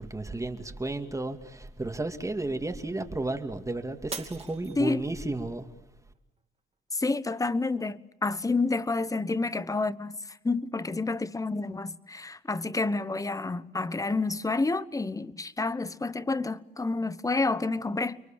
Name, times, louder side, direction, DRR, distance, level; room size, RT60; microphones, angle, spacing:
voice 1, 0.0-5.7, right 2 dB, 15° right, 2.4 m, -33 dB
Shatter, 4.1-5.4 5.9-6.4 6.9-7.0, right 4 dB, 30° right, 3.0 m, -41 dB
voice 2, 6.9-18.2, left 3 dB, 15° left, 1.1 m, -29 dB
30.0 x 23.0 x 7.4 m
cardioid pair, 90°, 20 cm